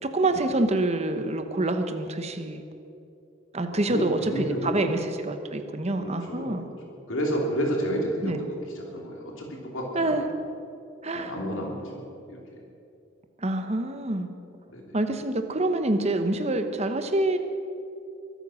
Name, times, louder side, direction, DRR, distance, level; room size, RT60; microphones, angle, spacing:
voice 1, 0.0-2.6 3.5-6.7 8.2-8.4 9.9-10.3 11.0-11.3 13.4-14.3 14.9-17.4, right 2 dB, 35° right, 7 dB, 1.0 m, -26 dB
voice 2, 3.7-5.0 6.0-6.7 7.1-10.1 11.1-12.4 14.7-14.9, equal, 80° left, -1 dB, 2.9 m, -31 dB
23.5 x 9.2 x 6.3 m, 2.7 s
head